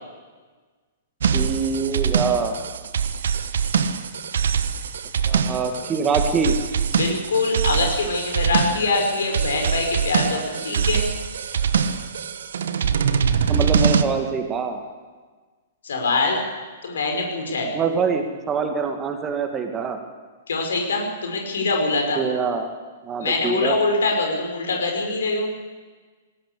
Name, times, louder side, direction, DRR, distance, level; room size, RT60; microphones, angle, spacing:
sound 1, 1.2-14.0, right 7 dB, 60° right, 1.2 m, -23 dB
voice 1, 1.3-2.6 5.3-6.6 13.5-14.8 17.7-20.0 22.2-22.7 23.0-23.8, right 5 dB, 20° right, 5 dB, 2.1 m, -24 dB
voice 2, 6.9-11.1 15.8-16.4 16.8-17.7 20.5-22.2 23.2-25.5, left 3 dB, 60° left, 2 dB, 5.6 m, -23 dB
20.0 x 18.0 x 8.4 m, 1.4 s
figure-of-eight pair, 110°, 0 cm